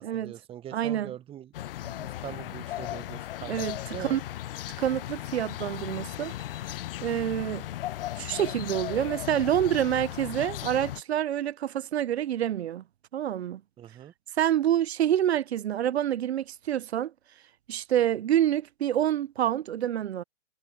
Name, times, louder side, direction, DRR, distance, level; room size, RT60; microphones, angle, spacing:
voice 1, 0.0-1.5 1.8-3.7 3.9-4.2 13.8-14.1, right 11 dB, 15° right, 1.1 m, -42 dB
voice 2, 0.7-1.1 3.4-4.2 4.8-6.3 7.0-7.7 8.2-12.8 13.1-13.6 14.4-17.1 17.7-20.2, right 11 dB, 60° right, 1.1 m, -27 dB
sound 1, 1.5-11.0, left 14 dB, 50° left, 1.0 m, -36 dB
figure-of-eight pair, 120°, 37 cm